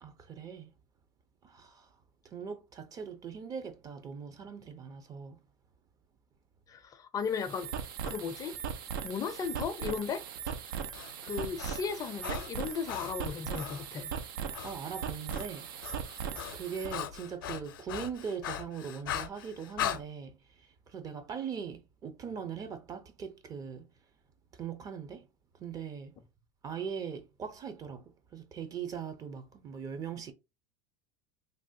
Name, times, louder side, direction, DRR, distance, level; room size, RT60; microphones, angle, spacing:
voice 1, 0.0-0.7 1.6-1.7 2.3-5.3 14.6-15.7 16.5-20.3 20.9-23.8 24.6-25.2 25.6-26.1 26.6-28.0 28.3-30.3, right 7 dB, 35° right, 0.6 m, -40 dB
voice 2, 6.7-7.7 8.0-8.6 9.0-10.2 11.2-14.1, left 6 dB, 30° left, 0.4 m, -35 dB
sound 1, 7.2-17.0, right 7 dB, 80° right, 0.5 m, -39 dB
Breathing, 10.7-13.9 14.5-14.8 15.1-20.0, left 11 dB, 85° left, 0.5 m, -39 dB
3.2 x 2.2 x 2.6 m
supercardioid pair, 105°, 11 cm